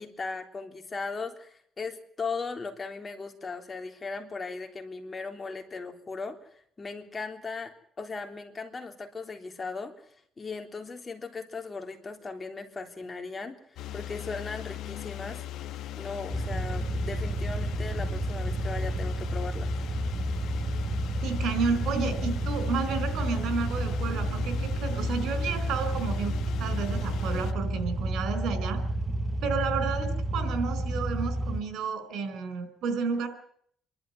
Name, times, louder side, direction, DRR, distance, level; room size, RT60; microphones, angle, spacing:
voice 1, 0.0-6.4 6.8-9.9 10.4-13.6 13.9-15.4 16.0-19.7, left 4 dB, 30° left, 4 dB, 3.6 m, -37 dB
sound 1, 13.8-27.5, left 12 dB, 85° left, 1.3 m, -39 dB
sound 2, 16.3-31.6, right 1 dB, 25° right, 1.1 m, -30 dB
voice 2, 21.2-26.3 26.6-28.8 29.4-33.3, right 5 dB, 80° right, 10 dB, 4.3 m, -31 dB
26.0 x 12.5 x 9.6 m, 0.66 s
cardioid pair, 90°, 0 cm